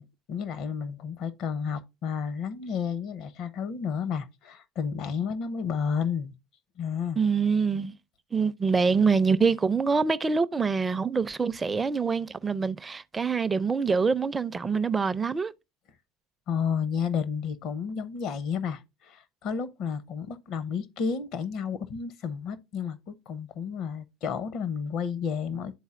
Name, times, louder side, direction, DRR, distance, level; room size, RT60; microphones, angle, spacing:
voice 1, 0.0-6.3 6.8-7.2 16.5-25.7, left 6 dB, 55° left, 0.7 m, -31 dB
voice 2, 7.2-7.9 8.3-15.5, right 5 dB, 20° right, 0.4 m, -25 dB
11.0 x 4.0 x 2.5 m
hypercardioid pair, 85°, 0 cm